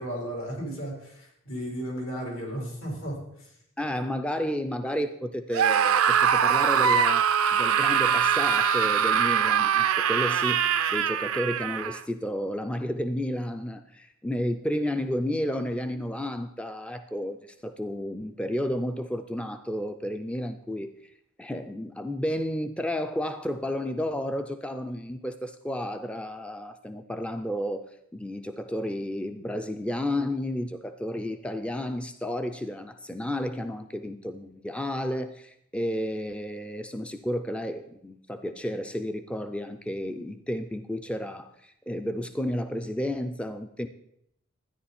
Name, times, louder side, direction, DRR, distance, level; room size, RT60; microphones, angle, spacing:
voice 1, 0.0-3.5, equal, 80° left, -1 dB, 4.4 m, -34 dB
voice 2, 3.8-21.1 21.4-27.8 28.1-43.9, equal, 5° left, 8 dB, 0.4 m, -32 dB
Screaming, 5.5-12.0, right 7 dB, 85° right, 0.6 m, -23 dB
13.0 x 9.8 x 4.3 m, 0.73 s
head